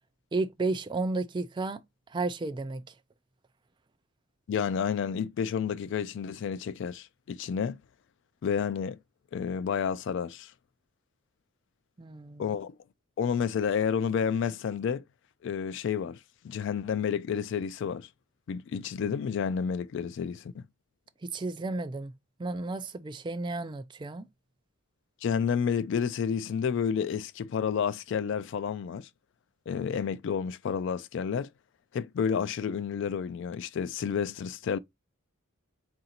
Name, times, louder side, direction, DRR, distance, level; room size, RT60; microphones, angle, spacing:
voice 1, 0.3-1.8 2.1-2.8 12.0-12.5 21.2-22.1 22.4-24.3, right 3 dB, 20° right, 0.3 m, -32 dB
voice 2, 4.5-7.8 8.4-9.0 9.3-10.5 12.4-12.8 13.2-15.0 15.4-16.2 16.4-18.1 18.5-20.6 25.2-29.1 29.7-31.5 31.9-34.8, left 7 dB, 60° left, 0.3 m, -30 dB
3.9 x 2.5 x 4.2 m
head